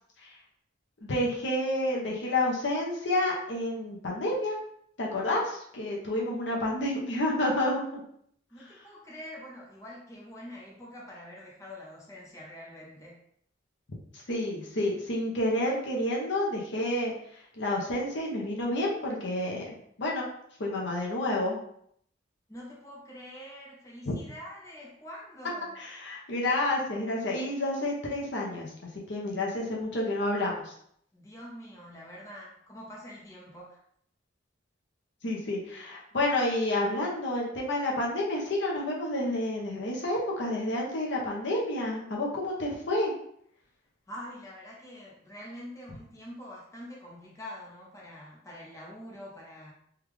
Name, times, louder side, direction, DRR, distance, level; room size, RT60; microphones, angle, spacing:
voice 1, 1.0-4.6 5.0-8.0 8.6-8.7 14.1-19.7 20.0-20.3 20.6-21.6 24.0-24.1 25.8-30.7 35.2-43.1, left 1 dB, 60° left, -3 dB, 0.7 m, -29 dB
voice 2, 8.5-13.2 22.5-25.8 31.1-33.8 44.1-49.7, equal, 15° left, -4 dB, 0.7 m, -45 dB
3.5 x 2.4 x 3.1 m, 0.68 s
head